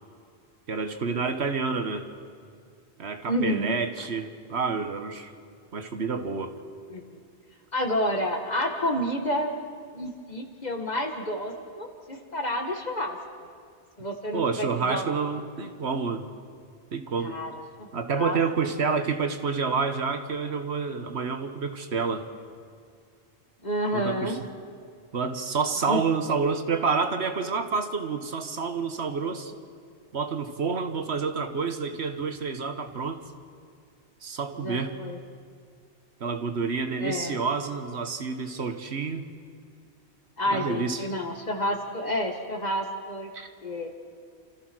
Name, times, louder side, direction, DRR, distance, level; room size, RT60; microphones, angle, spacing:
voice 1, 0.7-2.1 3.0-5.3 5.7-6.5 14.3-16.2 16.9-17.4 17.9-22.2 23.9-24.4 25.1-29.5 30.1-33.2 34.2-35.0 36.2-39.2 40.5-41.0 43.3-43.5, right 5 dB, 70° right, 7 dB, 1.5 m, -28 dB
voice 2, 3.3-3.8 6.9-7.2 7.7-9.5 9.9-13.5 14.0-15.1 17.2-17.5 17.8-17.9 18.2-18.4 23.6-24.4 25.9-26.0 34.6-35.2 37.0-37.4 40.4-43.3 43.6-43.9, equal, 40° left, 3 dB, 1.9 m, -29 dB
29.5 x 14.0 x 6.2 m, 2.2 s
omnidirectional pair, 1.1 m